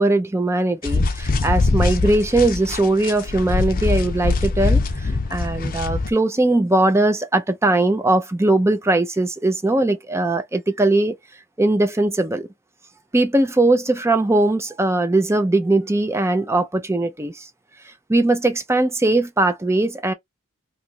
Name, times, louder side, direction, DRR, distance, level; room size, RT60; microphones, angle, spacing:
voice 1, 0.0-11.1 11.6-12.5 13.1-17.5 18.1-20.1, right 2 dB, 10° right, 0.5 m, -20 dB
sound 1, 0.8-6.1, left 3 dB, 40° left, 0.6 m, -22 dB
2.9 x 2.5 x 4.3 m
head